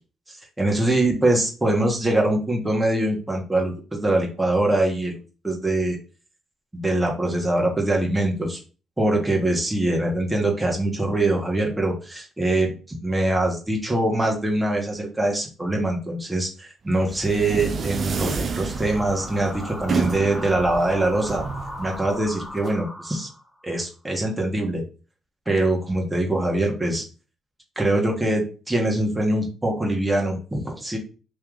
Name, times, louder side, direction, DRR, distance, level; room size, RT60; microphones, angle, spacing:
voice 1, 0.3-6.0 6.7-8.6 9.0-21.4 21.8-23.3 23.6-24.8 25.4-27.0 27.7-31.0, right 1 dB, 15° right, 0 dB, 1.5 m, -23 dB
sound 1, 16.9-22.7, right 5 dB, 50° right, 0.5 m, -31 dB
sound 2, 18.5-23.6, left 1 dB, 5° left, 1.1 m, -38 dB
3.2 x 2.8 x 3.8 m, 0.34 s
supercardioid pair, 60°, 0 cm